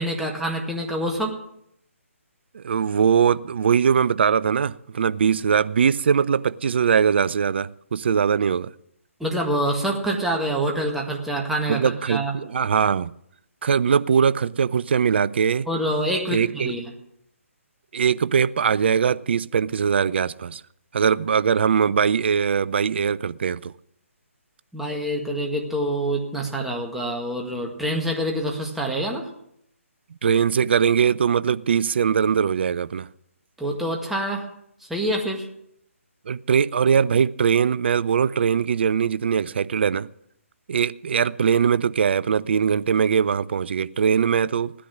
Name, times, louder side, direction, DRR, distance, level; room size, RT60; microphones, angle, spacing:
voice 1, 0.0-1.4 9.2-12.3 15.7-16.9 24.7-29.3 33.6-34.4 34.9-35.5, right 1 dB, 5° right, 1.8 m, -26 dB
voice 2, 2.5-8.7 11.7-13.1 13.6-15.7 16.3-16.8 17.9-20.6 20.9-23.7 30.2-33.1 36.3-40.1 40.7-44.7, right 7 dB, 50° right, 0.5 m, -21 dB
16.5 x 10.5 x 6.3 m
figure-of-eight pair, 140°, 8 cm